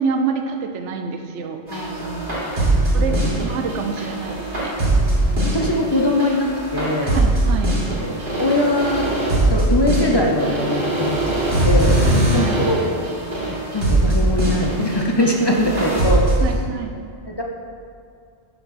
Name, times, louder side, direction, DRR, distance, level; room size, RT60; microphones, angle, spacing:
voice 1, 0.0-1.6 2.9-4.7 7.1-7.8 12.0-12.6 15.5-15.6 15.9-16.0 16.4-16.9, right 5 dB, 90° right, 6 dB, 1.0 m, -26 dB
voice 2, 1.7-3.4 5.3-7.2 8.0-8.1 8.4-9.1 9.5-11.4 11.6-12.0 12.3-12.8 13.5-16.2 17.3-17.4, left 1 dB, 35° left, 0 dB, 0.4 m, -22 dB
sound 1, 1.7-16.4, right 1 dB, 45° right, 1.9 m, -21 dB
5.8 x 5.5 x 5.7 m, 2.3 s
omnidirectional pair, 1.2 m